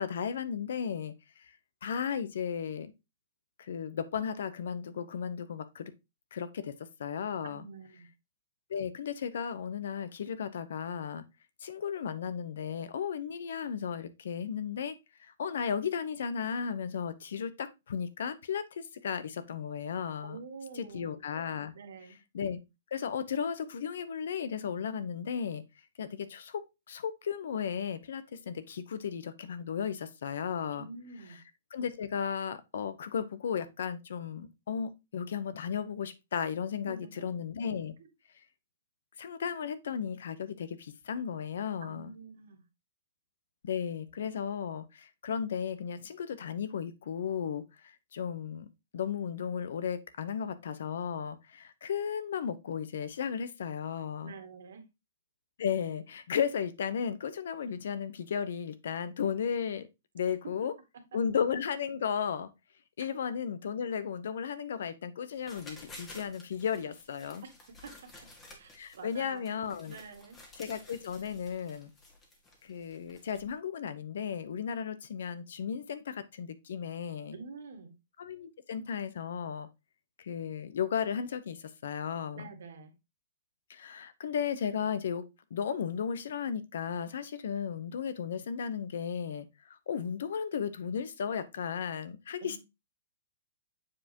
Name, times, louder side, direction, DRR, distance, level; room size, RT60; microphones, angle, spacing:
voice 1, 0.0-1.5 1.8-2.9 3.6-5.9 6.3-6.7 7.0-7.6 8.7-11.2 11.6-14.9 15.2-20.4 20.8-21.7 22.3-22.6 22.9-25.6 26.0-30.8 31.7-37.9 39.2-42.1 43.6-48.7 48.9-54.3 55.6-59.9 60.1-60.7 61.1-62.5 63.0-67.4 68.7-70.0 70.6-71.9 72.6-77.3 78.2-79.7 80.2-82.5 83.7-85.2 85.5-92.6, left 7 dB, 70° left, 0.8 m, -35 dB
voice 2, 7.4-8.1 20.2-21.2 21.7-22.2 30.7-31.4 36.8-37.4 41.8-42.6 54.2-54.8 61.1-61.2 67.8-68.3 68.6-70.4 77.3-77.9 82.3-82.9 92.4-92.6, right 4 dB, 70° right, 1.7 m, -47 dB
sound 1, 65.3-73.5, left 1 dB, 15° left, 1.7 m, -53 dB
7.4 x 4.7 x 2.9 m
hypercardioid pair, 160°, 0 cm